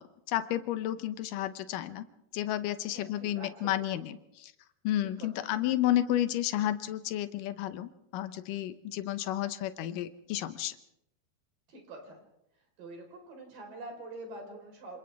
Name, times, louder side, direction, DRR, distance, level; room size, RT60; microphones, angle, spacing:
voice 1, 0.0-2.0 2.3-4.2 4.8-10.7, left 13 dB, 75° left, 11 dB, 2.1 m, -31 dB
voice 2, 2.9-4.0 5.0-5.5 11.7-12.2 12.8-15.0, right 2 dB, 55° right, 2 dB, 6.0 m, -46 dB
28.0 x 27.0 x 3.6 m, 0.81 s
omnidirectional pair, 4.6 m